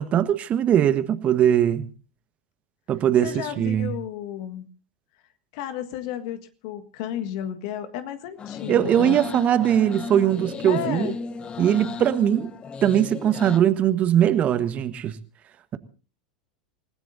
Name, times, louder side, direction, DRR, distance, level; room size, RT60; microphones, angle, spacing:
voice 1, 0.0-1.9 2.9-3.9 8.7-11.1 11.6-12.5 12.8-15.2, right 10 dB, 35° right, 1.4 m, -21 dB
voice 2, 3.2-4.7 5.5-9.3 10.6-11.2, left 10 dB, 60° left, 1.6 m, -32 dB
sound 1, 8.4-13.6, left 4 dB, 25° left, 1.0 m, -35 dB
28.5 x 17.0 x 2.7 m
hypercardioid pair, 90°, 4 cm